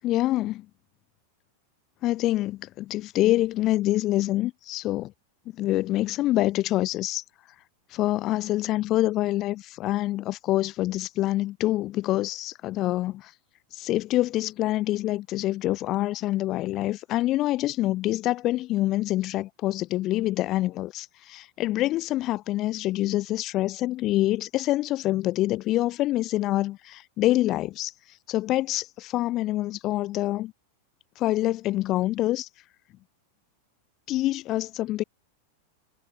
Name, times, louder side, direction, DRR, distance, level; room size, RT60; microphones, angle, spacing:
voice 1, 0.0-0.7 2.0-5.1 5.5-7.2 7.9-13.3 13.7-27.9 28.3-30.5 31.2-32.5 34.1-35.0, left 16 dB, 35° left, 1.4 m, -26 dB
figure-of-eight pair, 90°, 0 cm